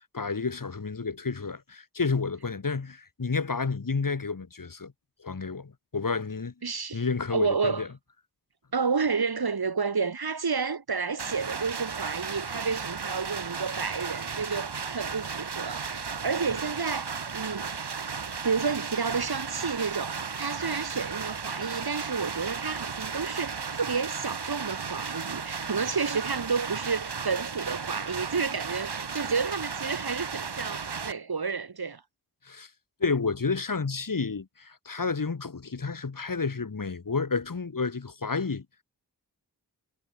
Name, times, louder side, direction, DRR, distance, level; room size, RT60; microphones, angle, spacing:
voice 1, 0.1-4.9 5.2-6.5 6.9-7.9 32.4-32.7 33.0-38.7, left 4 dB, 55° left, 4.4 m, -30 dB
voice 2, 6.6-7.0 7.3-7.9 8.7-17.7 18.4-32.0, right 5 dB, 65° right, 5.0 m, -30 dB
sound 1, 11.2-31.1, right 5 dB, 85° right, 6.9 m, -35 dB
wide cardioid pair, 95°, 39 cm